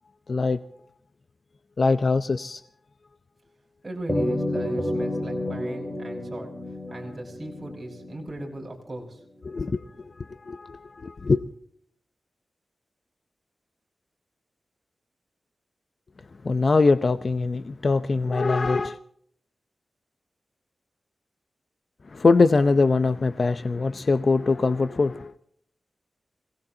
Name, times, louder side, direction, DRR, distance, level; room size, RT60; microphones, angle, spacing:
voice 1, 0.3-0.6 1.8-2.6 9.5-9.8 10.2-11.4 16.4-19.0 22.1-25.3, left 3 dB, 50° left, 11 dB, 0.7 m, -22 dB
voice 2, 3.8-9.2, right 1 dB, 25° right, -1 dB, 5.6 m, -38 dB
sound 1, 4.1-8.7, left 1 dB, ahead, 5.8 m, -30 dB
26.0 x 18.5 x 2.9 m, 0.64 s
wide cardioid pair, 90°, 0 cm